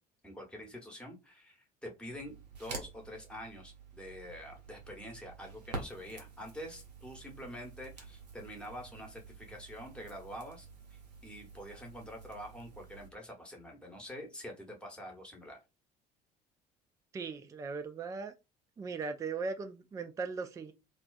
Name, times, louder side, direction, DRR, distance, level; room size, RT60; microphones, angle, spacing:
voice 1, 0.2-15.6, equal, 5° left, 0.9 m, -46 dB
Crackle, 2.1-13.1, right 4 dB, 80° right, 0.6 m, -49 dB
voice 2, 17.1-18.3 18.8-20.7, right 4 dB, 15° right, 0.3 m, -38 dB
2.4 x 2.3 x 2.3 m
figure-of-eight pair, 55°, 21 cm